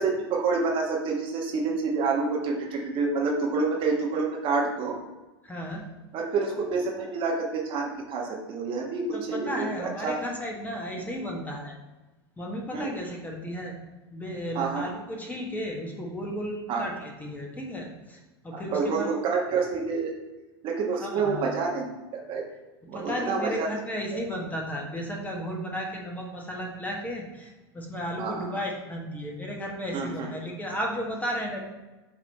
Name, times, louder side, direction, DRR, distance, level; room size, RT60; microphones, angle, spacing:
voice 1, 0.0-5.0 6.1-10.2 12.7-13.0 14.5-14.8 16.7-16.8 18.5-20.1 20.6-21.9 22.1-22.5 22.9-23.8 28.2-28.5 29.9-30.3, right 4 dB, 40° right, -1 dB, 1.3 m, -28 dB
voice 2, 5.4-5.8 9.1-11.7 12.4-13.7 14.1-19.1 21.0-21.4 22.9-31.6, equal, 10° left, -1 dB, 1.3 m, -34 dB
7.2 x 3.2 x 4.2 m, 1.1 s
figure-of-eight pair, 90°, 14 cm